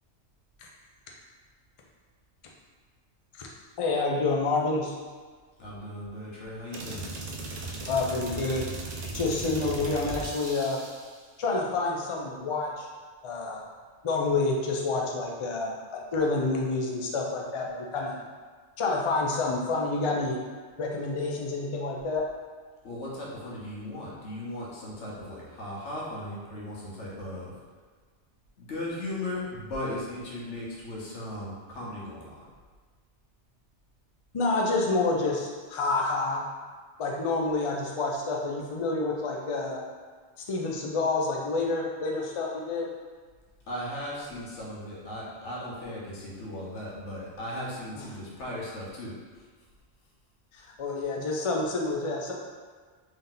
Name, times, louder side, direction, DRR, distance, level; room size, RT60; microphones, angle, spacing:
voice 1, 3.8-4.9 7.8-8.6 9.1-10.8 11.4-12.9 13.2-13.6 14.0-18.2 18.8-20.4 20.8-22.2 34.3-36.4 37.0-39.8 40.5-42.9 48.0-48.1 50.5-52.3, left 3 dB, 45° left, -1 dB, 0.4 m, -28 dB
voice 2, 5.6-7.0 22.8-27.5 28.6-32.4 43.7-49.1, left 1 dB, 90° left, -5 dB, 1.3 m, -37 dB
sound 1, 6.7-11.2, right 2 dB, 55° right, 0.5 m, -37 dB
3.4 x 2.8 x 3.8 m, 1.5 s
omnidirectional pair, 1.1 m